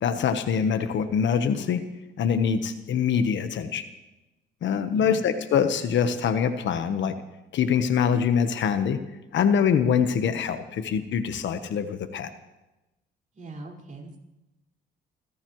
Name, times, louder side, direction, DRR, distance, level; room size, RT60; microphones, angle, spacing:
voice 1, 0.0-1.8 2.2-3.8 4.6-7.1 7.5-9.0 9.3-12.3, left 7 dB, 70° left, 9 dB, 1.2 m, -24 dB
voice 2, 13.3-14.2, right 3 dB, 40° right, -1 dB, 5.1 m, -41 dB
28.5 x 15.0 x 3.1 m, 1.0 s
cardioid pair, 90°, 20 cm